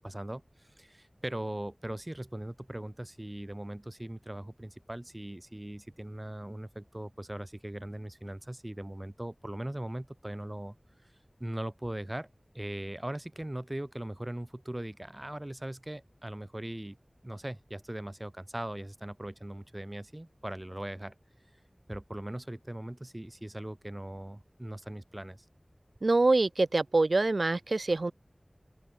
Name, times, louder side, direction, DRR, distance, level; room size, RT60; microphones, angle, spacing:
voice 1, 0.0-10.7 11.4-12.3 12.5-17.0 17.2-21.1 21.9-25.4, right 1 dB, 25° right, 1.6 m, -40 dB
voice 2, 26.0-28.1, right 2 dB, 80° right, 0.4 m, -25 dB
open air
wide cardioid pair, 45°, 0 cm